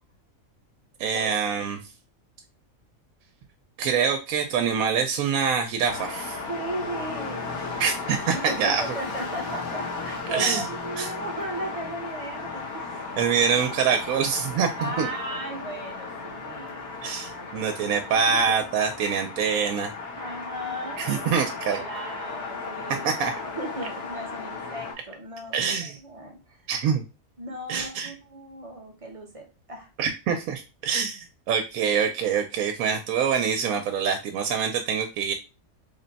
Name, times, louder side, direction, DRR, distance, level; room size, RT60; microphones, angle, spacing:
voice 1, 1.0-1.8 3.8-6.4 7.8-8.8 10.3-10.6 11.0-11.1 13.2-15.1 17.0-19.9 21.0-21.8 23.0-23.3 25.5-26.0 26.7-27.0 27.7-28.1 30.0-35.3, right 6 dB, 80° right, 5 dB, 1.0 m, -25 dB
sound 1, 5.9-24.9, left 4 dB, 90° left, 1.4 m, -35 dB
voice 2, 6.5-7.5 8.3-13.2 14.8-18.6 20.1-23.1 23.4-25.5 25.8-26.6 27.4-29.9, right 1 dB, 30° right, 3 dB, 0.8 m, -36 dB
3.5 x 2.2 x 3.9 m, 0.29 s
omnidirectional pair, 1.4 m